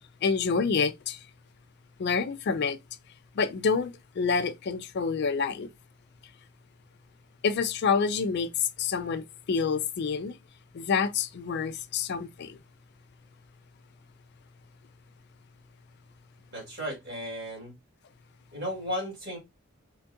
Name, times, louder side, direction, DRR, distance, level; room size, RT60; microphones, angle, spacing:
voice 1, 0.2-1.2 2.0-2.8 3.4-5.7 7.4-10.4 10.7-12.6, left 5 dB, 50° left, 0.4 m, -28 dB
voice 2, 16.5-17.7 18.5-19.4, equal, 50° right, 2.2 m, -34 dB
4.3 x 2.3 x 2.6 m
head